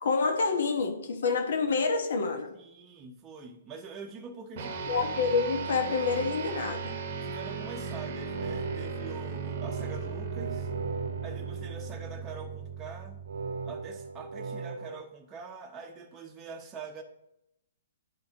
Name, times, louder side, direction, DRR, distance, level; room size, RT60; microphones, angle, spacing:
voice 1, 0.0-2.5 4.9-7.0, left 4 dB, 70° left, 6 dB, 1.0 m, -28 dB
voice 2, 2.5-4.9 7.2-10.7 11.2-13.2 13.6-17.0, right 5 dB, 20° right, 1 dB, 0.7 m, -44 dB
sound 1, 4.6-14.3, right 5 dB, 50° right, 0.8 m, -37 dB
sound 2, 8.0-12.4 13.3-15.0, right 4 dB, 80° right, 0.4 m, -39 dB
10.5 x 3.9 x 2.9 m, 0.84 s
hypercardioid pair, 135°, 0 cm